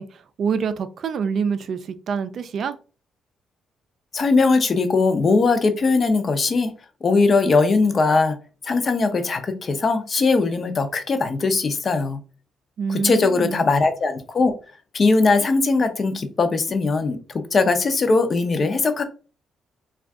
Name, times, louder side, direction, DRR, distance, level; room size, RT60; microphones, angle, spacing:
voice 1, 0.0-2.8 12.8-13.6, right 6 dB, 60° right, 0.3 m, -26 dB
voice 2, 4.1-6.7 7.0-8.4 8.6-12.2 12.9-14.5 14.9-17.2 17.5-19.0, left 3 dB, 40° left, 0.5 m, -20 dB
2.5 x 2.3 x 3.5 m
cardioid pair, 90°, 0 cm